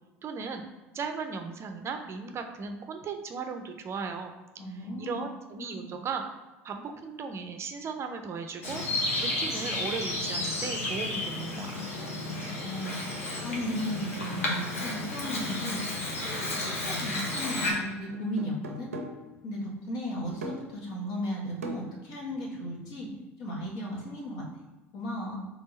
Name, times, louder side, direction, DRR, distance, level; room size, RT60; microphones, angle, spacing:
voice 1, 0.2-0.7 0.9-4.3 5.0-6.2 6.6-8.8 9.2-11.8, right 5 dB, 35° right, 6 dB, 0.5 m, -36 dB
voice 2, 4.6-5.2 5.6-5.9 12.6-12.9 13.4-18.9 19.4-23.1 23.4-24.5 24.9-25.4, equal, 55° left, -3 dB, 1.4 m, -35 dB
Bird vocalization bird call bird song, 8.6-17.7, left 2 dB, 80° left, 1.0 m, -32 dB
sound 1, 18.1-19.3 20.4-20.8 21.6-22.9, right 1 dB, 85° right, 0.5 m, -41 dB
3.6 x 3.4 x 3.9 m, 1.1 s
figure-of-eight pair, 70°, 7 cm